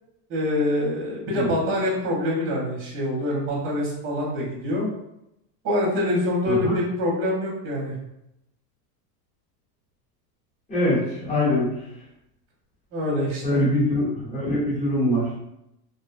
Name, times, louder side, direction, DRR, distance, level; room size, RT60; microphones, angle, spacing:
voice 1, 0.3-4.9 5.6-7.9 12.9-13.6, left 1 dB, 25° right, -4 dB, 0.8 m, -25 dB
voice 2, 10.7-11.7 13.4-15.3, left 1 dB, 15° left, -9 dB, 1.0 m, -23 dB
2.6 x 2.1 x 2.5 m, 0.84 s
supercardioid pair, 140°, 48 cm